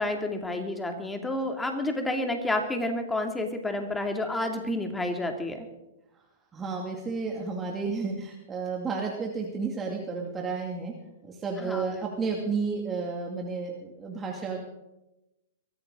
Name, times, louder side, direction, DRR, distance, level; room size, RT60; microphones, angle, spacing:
voice 1, 0.0-5.7 11.6-12.2, left 1 dB, 10° left, 4 dB, 2.5 m, -30 dB
voice 2, 6.5-10.9 11.4-13.7 14.0-14.6, right 4 dB, 20° right, 0 dB, 2.4 m, -31 dB
23.0 x 14.5 x 3.9 m, 0.94 s
hypercardioid pair, 115°, 0 cm